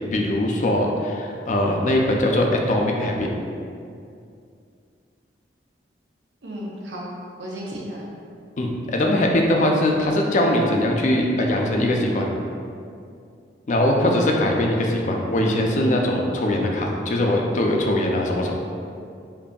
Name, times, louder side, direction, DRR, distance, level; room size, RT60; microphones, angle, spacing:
voice 1, 0.1-3.3 8.6-12.3 13.7-18.5, left 1 dB, 40° left, 0 dB, 0.4 m, -21 dB
voice 2, 6.4-7.1 7.4-8.1 14.4-14.5, equal, 80° right, -3 dB, 0.7 m, -34 dB
5.1 x 2.6 x 2.3 m, 2.4 s
head